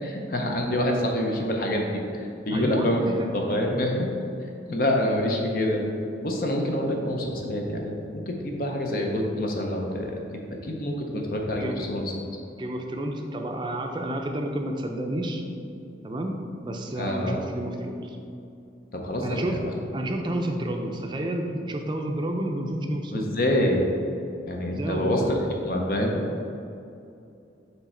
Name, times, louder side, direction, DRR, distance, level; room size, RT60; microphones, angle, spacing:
voice 1, 0.0-2.0 2.4-3.0 3.3-4.1 4.7-5.8 6.2-10.1 10.6-12.1 17.0-17.4 18.9-19.7 23.1-23.9 24.5-25.2 25.6-26.2, left 1 dB, 50° left, 1 dB, 0.6 m, -26 dB
voice 2, 2.5-3.3 11.6-11.9 12.6-15.4 16.0-18.2 19.2-19.7 19.9-23.3 24.7-25.3, right 1 dB, 25° right, 3 dB, 0.5 m, -30 dB
7.1 x 3.3 x 4.2 m, 2.6 s
head